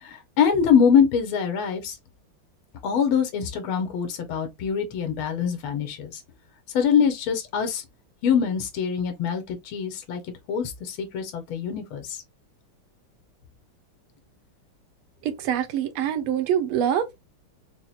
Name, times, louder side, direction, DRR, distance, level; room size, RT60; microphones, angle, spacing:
voice 1, 0.0-2.0 2.8-6.2 6.7-7.8 8.2-10.2 10.5-12.2, left 7 dB, 75° left, 1.8 m, -24 dB
voice 2, 15.2-17.2, right 9 dB, 85° right, 1.6 m, -25 dB
5.6 x 2.1 x 2.4 m
omnidirectional pair, 2.3 m